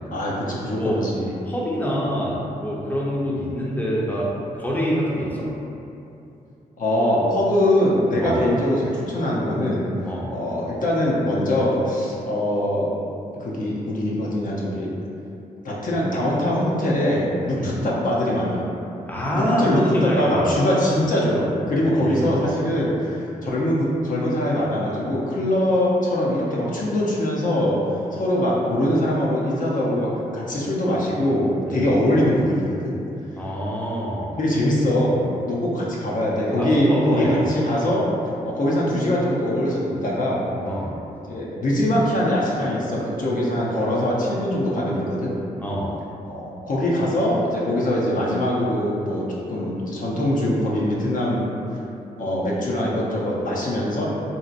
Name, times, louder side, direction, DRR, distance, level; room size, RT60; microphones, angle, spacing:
voice 1, 0.1-1.3 6.8-9.9 10.3-12.9 13.3-14.9 15.6-18.6 19.3-23.2 23.4-27.8 28.1-32.9 34.4-38.1 38.5-40.4 41.3-45.3 46.3-49.2 49.5-51.5 52.2-54.1, left 1 dB, 55° left, -5 dB, 0.6 m, -22 dB
voice 2, 1.4-5.5 8.2-8.4 10.0-10.2 17.5-17.7 19.1-20.5 21.9-22.4 31.7-31.9 33.4-34.3 36.6-37.4 40.6-40.9 45.6-45.8, equal, 10° left, -5 dB, 0.7 m, -25 dB
2.8 x 2.7 x 2.5 m, 2.7 s
supercardioid pair, 45°, 16 cm